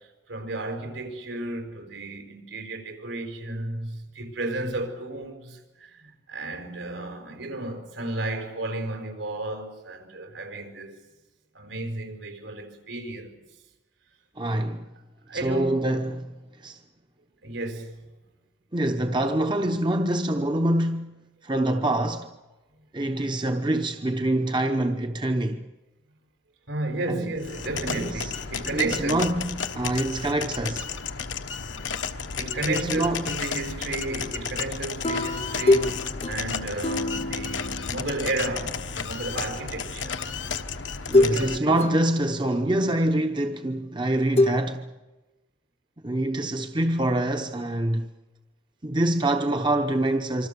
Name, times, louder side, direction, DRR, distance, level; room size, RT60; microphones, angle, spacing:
voice 1, 0.0-11.0 11.5-13.3 15.3-15.8 17.4-18.1 26.7-29.3 32.4-40.2 41.1-42.0, right 2 dB, 80° right, 5.1 m, -33 dB
voice 2, 14.4-14.9 15.3-16.8 18.7-22.3 22.9-25.7 27.1-27.3 27.8-28.3 28.7-30.9 32.7-33.3 41.1-44.9 46.0-48.1 48.8-50.5, right 1 dB, 25° right, 0.9 m, -25 dB
sound 1, 27.4-41.6, left 6 dB, 75° left, 1.2 m, -33 dB
sound 2, 35.0-38.6 40.0-40.1 41.1-41.4 41.8-42.6 44.4-44.5, left 2 dB, 30° left, 0.9 m, -25 dB
26.0 x 25.5 x 6.9 m
head